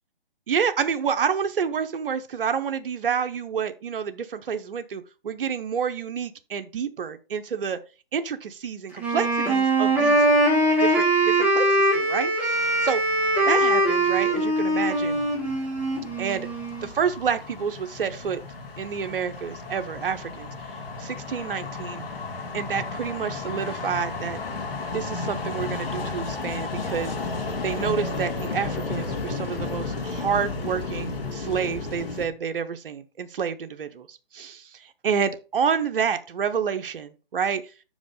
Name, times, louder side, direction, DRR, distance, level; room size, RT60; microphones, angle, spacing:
voice 1, 0.5-7.8 8.1-10.2 10.8-13.0 13.5-15.2 16.2-16.5 16.8-18.4 18.8-20.5 21.0-22.0 22.5-24.4 24.9-27.1 27.6-37.6, right 7 dB, 65° right, 0.8 m, -29 dB
Wind instrument woodwind instrument, 9.0-16.9, right 1 dB, 5° right, 1.7 m, -22 dB
sound 1, 12.5-32.3, left 3 dB, 65° left, 2.3 m, -34 dB
6.2 x 5.2 x 4.9 m
hypercardioid pair, 145°, 30 cm